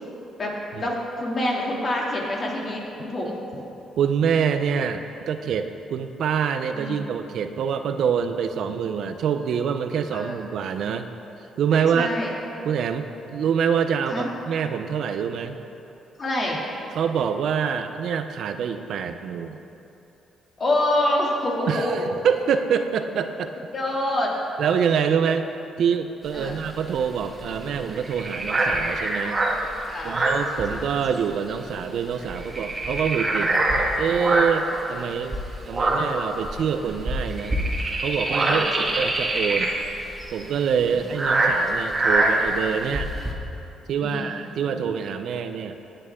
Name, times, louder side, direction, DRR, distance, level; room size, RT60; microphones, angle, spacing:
voice 1, 0.4-3.6 6.7-7.0 10.1-10.4 11.7-12.3 14.1-14.3 16.2-16.6 20.6-22.1 23.7-24.3 26.3-26.6 29.9-30.2 38.5-38.7 40.8-41.1 44.0-44.4, left 1 dB, 40° left, -2 dB, 2.5 m, -26 dB
voice 2, 4.0-11.1 11.6-12.1 12.6-15.6 16.9-19.6 21.7-23.5 24.6-25.5 25.8-29.4 30.0-33.7 34.0-37.6 38.0-39.7 40.3-43.1 43.9-45.7, right 7 dB, 70° right, 8 dB, 0.6 m, -25 dB
sound 1, 26.3-31.2 31.5-31.7 32.0-34.7 35.2-43.3, right 2 dB, 30° right, 1.7 m, -24 dB
16.5 x 9.1 x 3.6 m, 2.9 s
cardioid pair, 90°, 0 cm